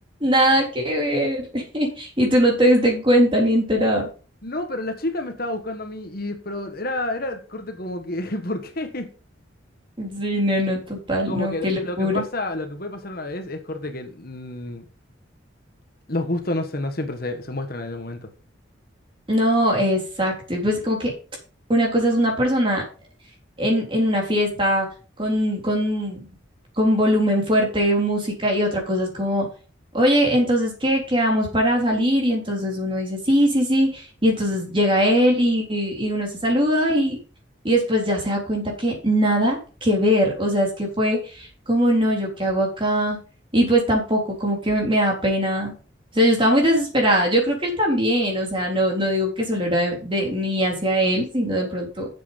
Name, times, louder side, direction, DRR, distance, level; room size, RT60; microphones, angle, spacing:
voice 1, 0.2-4.1 10.0-12.2 19.3-21.1 21.7-22.8 23.6-24.9 25.2-26.2 26.8-29.5 29.9-37.2 37.6-43.2 43.5-45.7 46.1-52.1, equal, 25° right, 3.8 m, -21 dB
voice 2, 4.4-9.1 11.3-14.8 16.1-18.3, left 1 dB, 45° left, 1.4 m, -29 dB
8.5 x 7.8 x 5.3 m
head